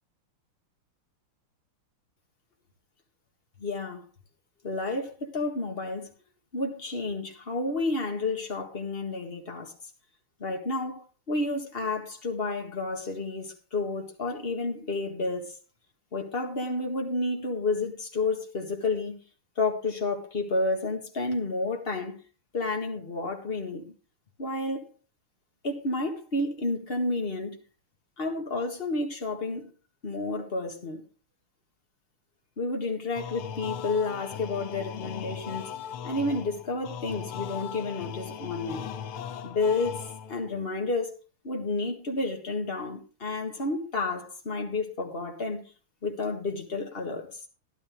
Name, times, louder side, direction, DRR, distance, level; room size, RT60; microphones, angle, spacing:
voice 1, 3.6-4.0 4.6-6.1 6.5-9.7 10.4-15.5 16.1-19.2 19.6-22.2 22.5-23.9 24.4-24.9 25.6-27.6 28.2-29.7 30.0-31.0 32.6-35.7 36.0-38.9 39.4-40.0 40.3-41.1 41.4-45.6 46.0-47.3, left 3 dB, 30° left, 1.8 m, -30 dB
sound 1, 33.2-40.5, left 8 dB, 85° left, 1.7 m, -38 dB
12.5 x 11.5 x 3.7 m
omnidirectional pair, 2.3 m